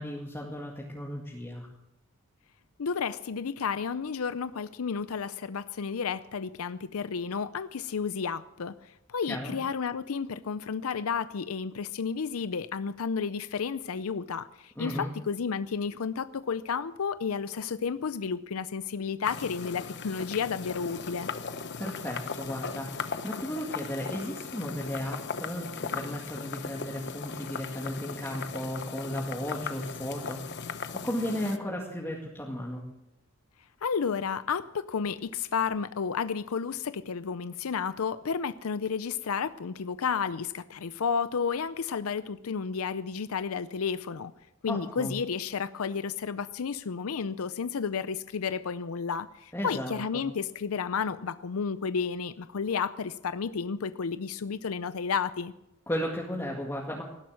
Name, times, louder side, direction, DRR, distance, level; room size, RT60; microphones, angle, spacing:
voice 1, 0.0-1.7 9.3-9.6 14.8-15.1 21.8-30.6 31.0-32.8 44.7-45.1 49.5-50.2 55.9-57.0, equal, 10° left, -3 dB, 2.1 m, -35 dB
voice 2, 2.8-21.3 33.8-44.3 44.6-55.5, left 6 dB, 90° left, 13 dB, 0.5 m, -32 dB
sound 1, 19.2-31.6, left 5 dB, 55° left, 1.0 m, -38 dB
19.0 x 11.5 x 6.3 m, 0.90 s
head